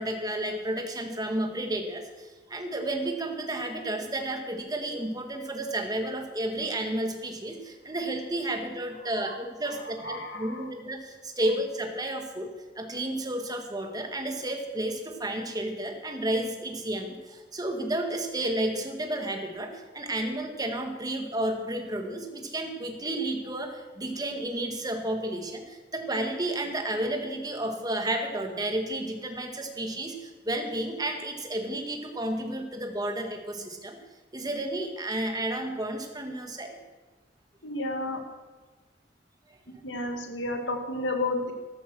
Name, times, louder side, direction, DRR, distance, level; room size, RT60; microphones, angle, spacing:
voice 1, 0.0-12.5 12.8-34.0 34.3-36.8, right 1 dB, 20° right, 4 dB, 1.9 m, -32 dB
voice 2, 10.0-10.6 37.6-38.2 39.8-41.5, left 2 dB, 90° left, 4 dB, 2.3 m, -31 dB
13.5 x 12.5 x 6.2 m, 1.3 s
head